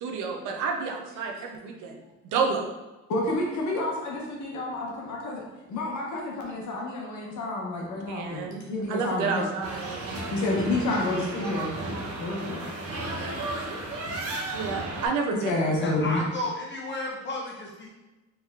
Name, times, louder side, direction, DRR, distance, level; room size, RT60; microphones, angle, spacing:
voice 1, 0.0-1.9 2.3-2.7 8.1-10.1 14.2-15.7, right 5 dB, 90° right, 2 dB, 0.7 m, -30 dB
voice 2, 3.1-9.5 10.3-11.7 12.2-12.6 15.5-16.2, left 2 dB, 70° left, -2 dB, 1.0 m, -29 dB
sound 1, 9.6-15.1, right 2 dB, 50° right, 1.0 m, -34 dB
voice 3, 15.8-17.9, left 2 dB, 40° left, -3 dB, 1.0 m, -33 dB
3.5 x 3.1 x 3.5 m, 1.1 s
cardioid pair, 90°, 30 cm